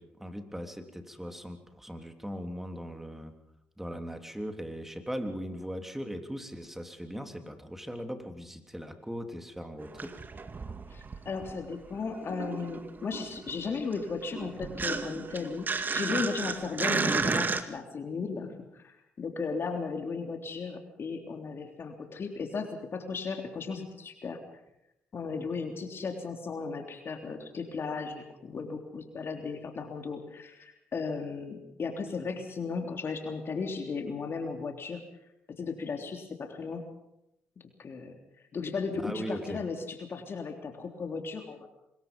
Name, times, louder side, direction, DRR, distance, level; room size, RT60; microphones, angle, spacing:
voice 1, 0.0-3.4 3.8-10.2 39.0-39.6, equal, 5° right, 5 dB, 3.4 m, -39 dB
sound 1, 9.8-11.7 12.0-17.6, right 4 dB, 40° right, 2.1 m, -33 dB
voice 2, 10.9-24.6 25.1-35.0 35.6-36.8 37.8-38.2 38.5-41.7, left 4 dB, 50° left, 4 dB, 3.4 m, -36 dB
24.5 x 21.5 x 5.5 m, 0.85 s
supercardioid pair, 55°, 5 cm